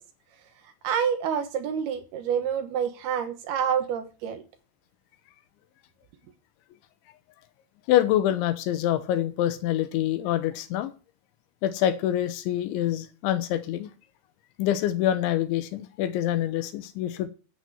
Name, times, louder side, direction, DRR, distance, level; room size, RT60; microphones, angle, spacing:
voice 1, 0.8-4.4, right 8 dB, 70° right, 2.8 m, -27 dB
voice 2, 7.9-10.9 11.6-13.9 14.6-17.3, left 12 dB, 80° left, 3.3 m, -26 dB
9.9 x 8.9 x 6.2 m
omnidirectional pair, 5.4 m